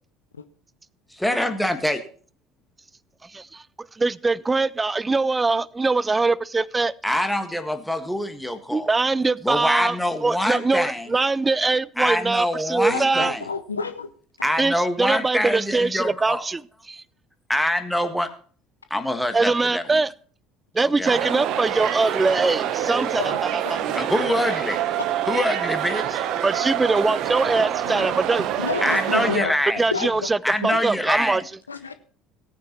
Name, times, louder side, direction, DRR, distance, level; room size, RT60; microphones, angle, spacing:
voice 1, 1.1-2.0 7.0-8.9 9.4-11.1 12.0-13.4 14.4-16.4 17.5-18.3 18.9-19.8 21.0-21.1 23.9-24.8 25.3-26.3 28.8-29.8 30.4-31.4, left 1 dB, 5° left, 7 dB, 1.6 m, -24 dB
voice 2, 3.2-6.9 8.7-13.3 14.6-17.0 19.3-20.1 20.7-24.0 26.4-28.5 29.8-31.4, right 3 dB, 20° right, 23 dB, 0.4 m, -23 dB
voice 3, 12.9-14.1 23.2-23.4 23.6-23.8 27.9-28.2 28.6-29.5 29.9-30.1 30.7-30.8 31.7-31.9, left 4 dB, 85° left, 11 dB, 0.6 m, -29 dB
sound 1, 21.0-29.4, right 10 dB, 55° right, 0.9 m, -26 dB
17.5 x 9.4 x 3.0 m, 0.43 s
figure-of-eight pair, 65°, 0 cm